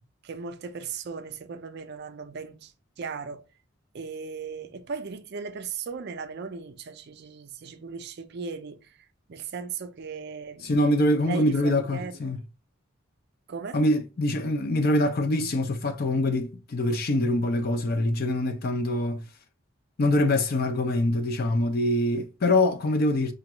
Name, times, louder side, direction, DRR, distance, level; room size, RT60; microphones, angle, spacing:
voice 1, 0.2-2.7 3.0-3.4 3.9-9.0 9.3-10.7 11.2-12.2 13.5-13.8, right 5 dB, 50° right, 0.4 m, -37 dB
voice 2, 10.6-12.4 13.7-19.2 20.0-23.3, left 1 dB, 45° left, 0.5 m, -24 dB
5.0 x 2.3 x 2.9 m
head